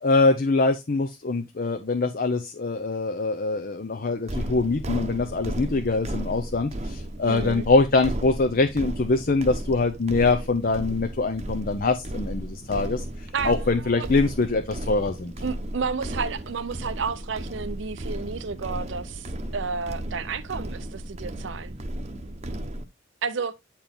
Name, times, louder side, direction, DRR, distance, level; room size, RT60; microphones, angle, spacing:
voice 1, 0.0-13.0 13.4-15.3, left 3 dB, 50° left, 0.6 m, -23 dB
sound 1, 4.3-22.8, right 1 dB, 35° right, 0.8 m, -34 dB
voice 2, 7.3-7.7 13.3-14.1 15.4-21.8 23.2-23.5, right 5 dB, 65° right, 0.6 m, -31 dB
8.9 x 4.4 x 3.5 m
head